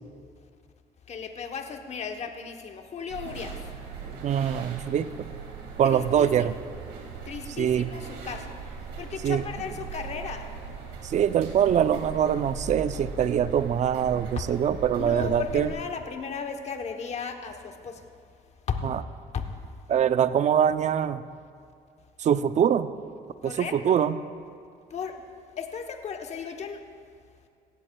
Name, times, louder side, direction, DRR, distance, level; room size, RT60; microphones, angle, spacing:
voice 1, 1.1-3.7 5.8-6.5 7.2-8.6 9.0-10.5 14.4-14.5 15.0-18.1 18.7-18.8 19.3-19.4 23.4-24.0 24.9-25.2 25.6-26.8, left 6 dB, 40° left, 5 dB, 0.9 m, -35 dB
sound 1, 3.1-15.8, right 5 dB, 85° right, 1.9 m, -39 dB
voice 2, 4.2-5.3 5.8-6.6 7.6-7.9 9.2-9.4 11.0-15.7 18.8-19.0 19.9-21.2 22.2-22.9 23.4-24.2, right 9 dB, 45° right, 13 dB, 0.5 m, -24 dB
16.5 x 15.5 x 2.3 m, 2.2 s
cardioid pair, 110°, 17 cm